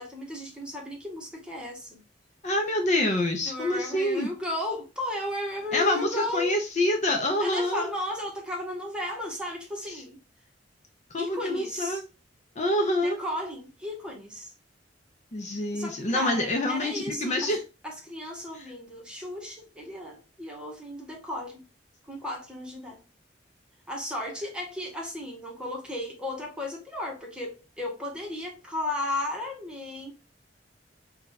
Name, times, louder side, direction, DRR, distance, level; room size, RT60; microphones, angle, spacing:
voice 1, 0.0-2.0 3.4-6.6 7.4-10.2 11.2-12.0 13.0-14.5 15.7-17.5 17.8-21.6 22.0-23.0 23.9-30.2, left 1 dB, 5° right, 0.9 m, -35 dB
voice 2, 2.4-4.3 5.7-7.9 11.1-12.0 12.6-13.2 15.3-17.6 18.5-18.7, left 1 dB, 40° left, 0.6 m, -26 dB
2.8 x 2.3 x 3.8 m
head